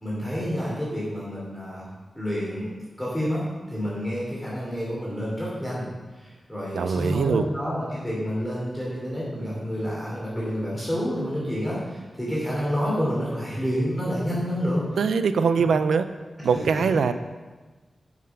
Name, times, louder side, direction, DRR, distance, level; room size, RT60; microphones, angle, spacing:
voice 1, 0.0-1.9 2.1-2.7 3.0-3.4 3.7-5.9 6.1-14.8 15.6-15.7 16.5-16.8, equal, 5° left, -7 dB, 3.1 m, -29 dB
voice 2, 6.7-7.5 15.0-16.0 16.4-17.1, right 5 dB, 90° right, 11 dB, 0.4 m, -22 dB
7.5 x 5.9 x 5.5 m, 1.3 s
cardioid pair, 45°, 0 cm